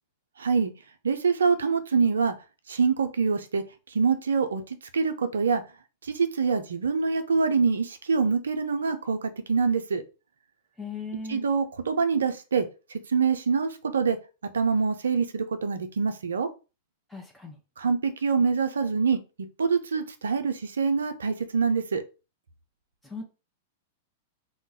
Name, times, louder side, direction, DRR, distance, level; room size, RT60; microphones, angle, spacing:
voice 1, 0.4-0.7 1.0-2.3 2.7-5.6 6.0-10.0 11.3-14.2 14.5-16.5 17.8-19.2 19.6-22.0, right 5 dB, 80° right, 9 dB, 0.5 m, -25 dB
voice 2, 10.8-11.4 17.1-17.6 23.0-23.2, left 4 dB, 5° left, 1 dB, 0.7 m, -37 dB
2.3 x 2.1 x 3.9 m, 0.31 s
hypercardioid pair, 100°, 0 cm